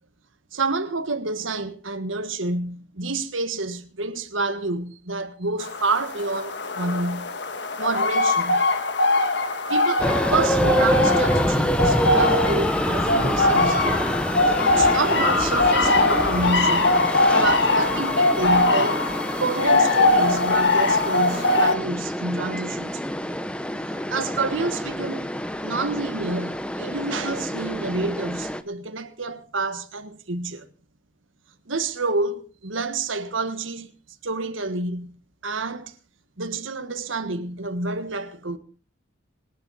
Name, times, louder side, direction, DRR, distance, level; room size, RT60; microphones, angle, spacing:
voice 1, 0.5-7.3 7.8-8.6 9.7-14.0 14.5-19.0 19.4-23.0 23.9-25.3 25.6-30.7 31.7-33.9 34.2-35.2 35.4-35.9 36.4-38.6, right 3 dB, 80° right, 1.6 m, -28 dB
sound 1, 5.6-21.7, left 2 dB, 60° left, 1.6 m, -22 dB
sound 2, 10.0-28.6, equal, 5° left, 0.8 m, -26 dB
26.0 x 10.0 x 4.2 m
head